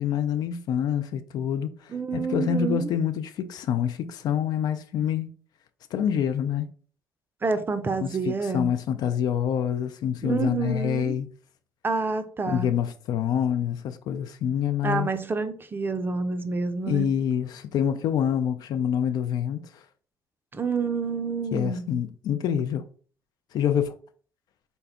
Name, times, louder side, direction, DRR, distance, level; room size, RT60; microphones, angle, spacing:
voice 1, 0.0-5.3 5.9-6.7 8.0-11.3 12.5-15.1 16.9-19.8 21.5-22.8 23.5-23.9, left 9 dB, 50° left, 0.3 m, -26 dB
voice 2, 1.9-2.9 7.4-8.7 10.2-11.2 11.8-12.7 14.8-17.2 20.5-21.9, right 4 dB, 25° right, 0.5 m, -28 dB
4.0 x 2.2 x 3.4 m
figure-of-eight pair, 45°, 9 cm